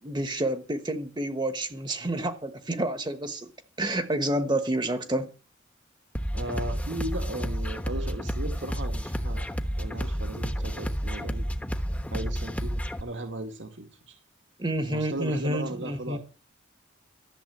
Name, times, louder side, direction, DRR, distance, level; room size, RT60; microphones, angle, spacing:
voice 1, 0.0-3.5 3.8-5.3 14.6-16.2, right 1 dB, 25° right, 1.2 m, -29 dB
sound 1, 6.1-13.0, equal, 5° left, 1.0 m, -31 dB
voice 2, 6.3-9.5 9.8-11.5 12.1-14.1 14.8-16.2, right 1 dB, 75° right, 2.1 m, -36 dB
13.5 x 7.4 x 8.5 m
head